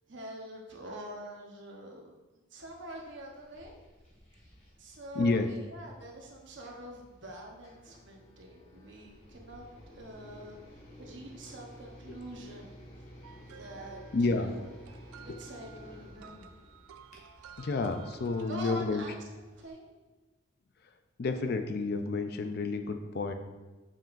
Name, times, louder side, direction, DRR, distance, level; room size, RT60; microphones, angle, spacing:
voice 1, 0.1-3.7 4.8-9.7 9.9-10.6 11.0-12.8 13.5-14.0 14.3-14.6 15.2-16.5 18.5-19.8, right 1 dB, 60° right, 0 dB, 1.0 m, -45 dB
sound 1, 2.7-19.7, equal, 30° left, 1.4 m, -54 dB
voice 2, 5.1-5.5 14.1-14.6 15.7-15.9 17.2-19.0 21.2-23.3, left 3 dB, 50° left, 7 dB, 0.4 m, -30 dB
sound 2, 13.2-18.5, right 7 dB, 85° right, 0.3 m, -53 dB
6.9 x 6.0 x 2.6 m, 1.2 s
head